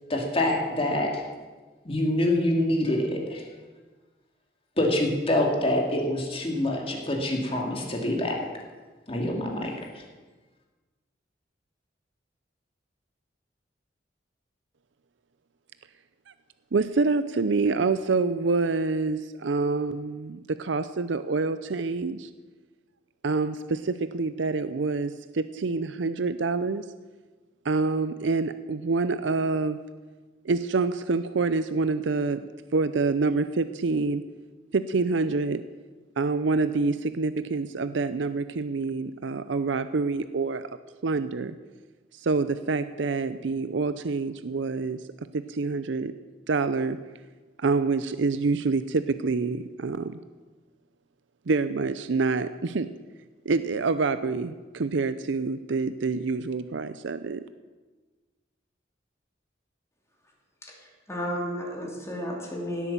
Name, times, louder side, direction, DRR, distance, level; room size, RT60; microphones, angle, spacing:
voice 1, 0.1-1.2 1.8-3.4 4.8-8.3 9.1-9.7, left 1 dB, 30° left, 0 dB, 2.4 m, -25 dB
voice 2, 16.7-22.3 23.2-26.8 27.6-29.8 30.4-32.5 32.7-34.2 34.7-35.6 36.2-40.7 41.0-41.6 42.1-45.0 45.3-46.1 46.5-47.0 47.6-50.2 51.5-52.9 53.5-57.4, right 4 dB, 75° right, 12 dB, 0.5 m, -26 dB
voice 3, 60.6-62.9, left 1 dB, 15° left, -1 dB, 2.9 m, -33 dB
17.0 x 8.4 x 7.4 m, 1.3 s
head